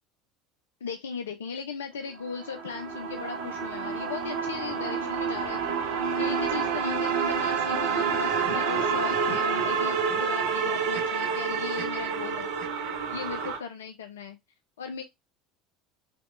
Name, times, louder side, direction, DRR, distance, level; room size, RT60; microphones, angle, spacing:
voice 1, 0.8-12.5 13.1-14.4 14.8-15.0, left 6 dB, 75° left, 0.4 m, -38 dB
sound 1, 2.3-13.6, right 6 dB, 65° right, 0.7 m, -28 dB
3.4 x 3.0 x 2.4 m
figure-of-eight pair, 70°, 0 cm